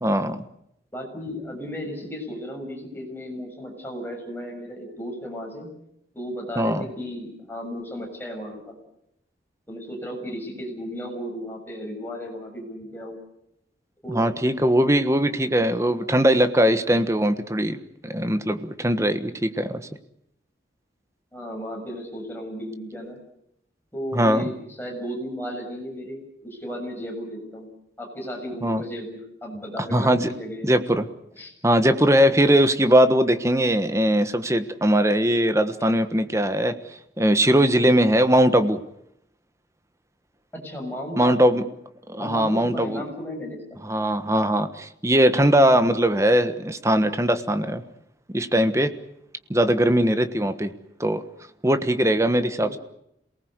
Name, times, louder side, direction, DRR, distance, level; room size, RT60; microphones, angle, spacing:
voice 1, 0.0-0.4 6.6-6.8 14.1-19.8 24.1-24.5 28.6-28.8 29.8-30.3 30.6-31.1 31.6-36.7 37.2-38.8 41.2-41.6 42.1-43.0 43.8-47.8 48.3-48.9 49.5-50.7 51.0-51.2 51.6-52.8, equal, 15° right, 9 dB, 1.3 m, -20 dB
voice 2, 0.9-5.7 6.1-8.8 9.7-13.2 14.0-14.3 21.3-23.2 23.9-27.7 28.0-30.7 31.4-31.5 40.5-41.6 42.2-43.8 52.6-52.8, equal, 10° left, 0 dB, 7.0 m, -34 dB
27.5 x 19.0 x 8.1 m, 0.78 s
head